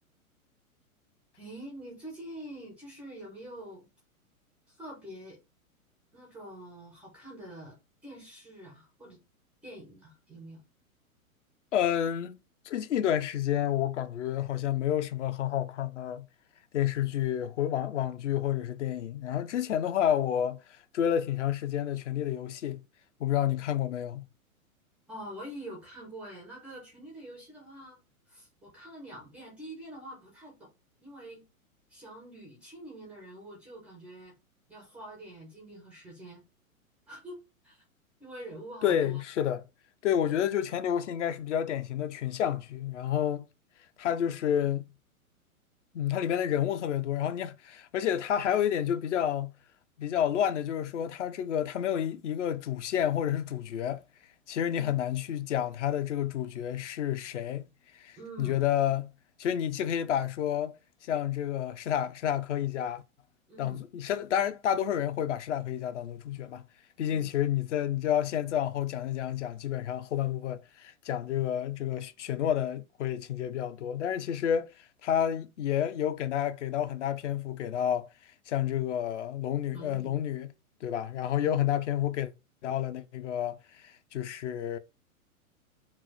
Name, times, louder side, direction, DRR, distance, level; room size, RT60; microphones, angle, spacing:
voice 1, 1.4-3.9 4.7-5.4 6.1-7.8 8.0-9.2 9.6-10.6 25.1-28.0 28.3-30.6 31.0-31.4 31.9-34.3 34.7-36.4 37.1-37.8 38.2-39.2 40.2-40.4 54.7-54.9 58.2-58.6 63.5-63.8 67.1-67.3 79.7-80.1 81.4-81.6, right 1 dB, 5° right, 0.3 m, -45 dB
voice 2, 11.7-12.4 12.7-16.3 16.7-20.6 20.9-22.8 23.2-24.3 38.8-39.6 40.0-43.5 44.0-44.8 45.9-49.5 50.0-54.0 54.5-57.7 57.9-59.1 59.4-60.8 61.0-63.0 63.6-66.6 67.0-78.1 78.5-80.5 80.8-82.3 82.6-84.8, left 10 dB, 55° left, 0.5 m, -30 dB
4.5 x 2.0 x 4.4 m
figure-of-eight pair, 110°, 43 cm